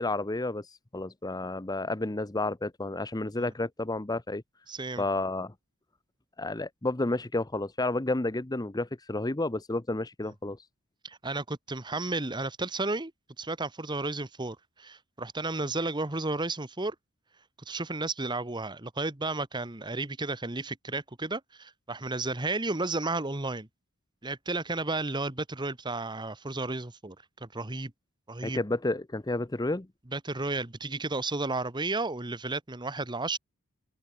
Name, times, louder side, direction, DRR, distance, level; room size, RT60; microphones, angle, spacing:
voice 1, 0.0-4.4 5.0-5.5 6.4-10.6 28.4-29.9, left 2 dB, 15° left, 0.7 m, -31 dB
voice 2, 4.7-5.0 10.2-10.3 11.0-13.1 13.4-16.9 17.7-23.7 24.2-27.9 28.3-28.6 30.1-33.4, right 2 dB, 20° right, 1.3 m, -33 dB
open air
head